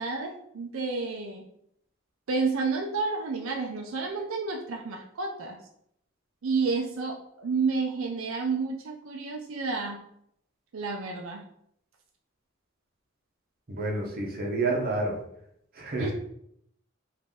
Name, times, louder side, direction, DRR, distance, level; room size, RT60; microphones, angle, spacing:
voice 1, 0.0-1.4 2.3-5.6 6.4-10.0 10.7-11.4 16.0-16.1, right 4 dB, 85° right, 2 dB, 0.5 m, -30 dB
voice 2, 13.7-15.2 15.7-16.1, right 2 dB, 45° right, 0 dB, 0.8 m, -29 dB
3.8 x 2.6 x 3.6 m, 0.73 s
head